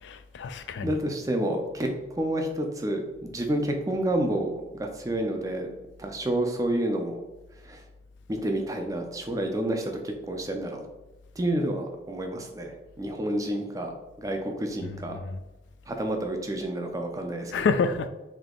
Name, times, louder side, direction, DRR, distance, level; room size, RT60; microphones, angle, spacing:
voice 1, 0.0-1.0 14.8-15.4 17.5-18.1, left 4 dB, 75° left, 0.3 m, -28 dB
voice 2, 0.8-1.9 2.2-5.7 6.0-7.1 7.6-7.8 8.3-10.8 11.4-13.9 14.2-15.2 15.9-17.5, right 1 dB, 20° right, 0.4 m, -29 dB
3.5 x 2.8 x 3.7 m
head